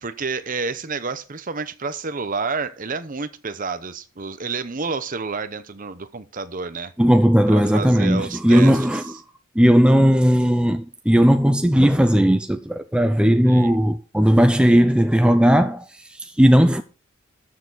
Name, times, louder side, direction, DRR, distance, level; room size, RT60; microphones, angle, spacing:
voice 1, 0.0-6.9 7.5-8.9 13.4-13.8, right 4 dB, 40° right, 0.8 m, -29 dB
voice 2, 7.0-9.1 9.6-15.8 16.2-16.8, equal, 5° right, 0.5 m, -16 dB
13.5 x 6.7 x 4.0 m
head